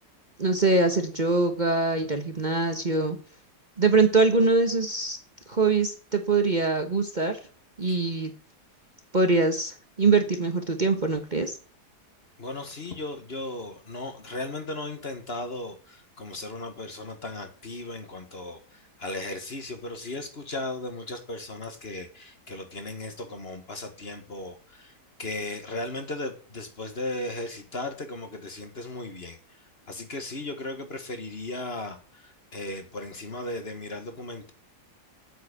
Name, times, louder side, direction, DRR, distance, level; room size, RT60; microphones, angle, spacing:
voice 1, 0.4-3.2 3.8-5.2 5.5-7.4 7.8-8.3 9.1-11.6, right 3 dB, 30° right, 6 dB, 1.3 m, -23 dB
voice 2, 12.4-24.9 25.2-29.4 29.9-34.5, left 2 dB, 40° left, 7 dB, 1.7 m, -36 dB
8.2 x 7.6 x 8.8 m, 0.39 s
omnidirectional pair, 1.7 m